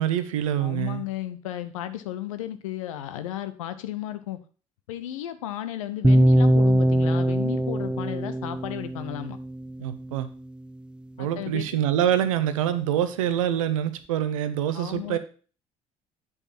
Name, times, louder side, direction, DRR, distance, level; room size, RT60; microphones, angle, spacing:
voice 1, 0.0-1.0 9.8-10.3 11.2-15.2, right 10 dB, 75° right, 12 dB, 0.7 m, -25 dB
voice 2, 0.6-4.4 4.9-9.4 11.2-11.7 14.7-15.2, left 12 dB, 75° left, 11 dB, 0.7 m, -34 dB
sound 1, 6.0-10.1, right 1 dB, 5° right, 0.4 m, -22 dB
8.3 x 5.4 x 4.2 m, 0.38 s
figure-of-eight pair, 55°, 17 cm